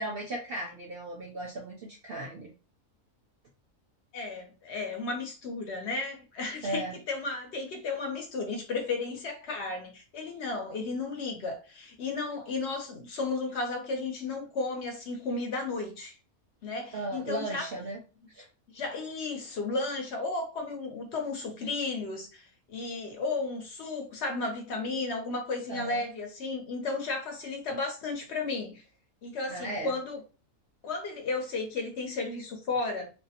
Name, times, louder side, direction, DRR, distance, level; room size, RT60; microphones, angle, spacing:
voice 1, 0.0-2.5 6.6-6.9 16.9-18.0 18.3-18.5 25.7-26.0 29.5-29.9, right 2 dB, 60° right, 0.6 m, -36 dB
voice 2, 4.1-16.1 16.6-17.6 18.7-28.8 29.2-30.2 30.8-33.1, left 3 dB, 60° left, 0.9 m, -34 dB
2.6 x 2.1 x 2.7 m
omnidirectional pair, 1.5 m